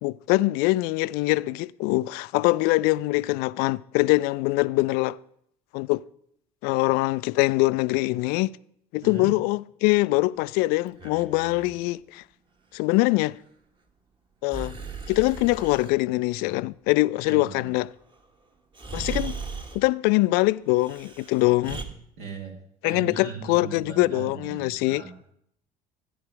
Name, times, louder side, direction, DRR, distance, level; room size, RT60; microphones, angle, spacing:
voice 1, 0.0-5.2 5.7-6.0 6.6-8.6 8.9-12.2 12.7-13.4 14.4-14.8 15.1-17.9 18.9-19.4 19.7-21.8 22.8-25.0, left 21 dB, 50° left, 0.4 m, -23 dB
voice 2, 9.0-9.3 17.2-17.7 22.2-22.6 22.8-25.1, right 5 dB, 60° right, 2.6 m, -38 dB
Breathing, 10.9-11.8 14.5-16.0 18.1-18.2 18.7-19.9 20.7-21.8, right 5 dB, 25° right, 1.8 m, -37 dB
13.5 x 10.5 x 4.8 m
figure-of-eight pair, 60°, 20 cm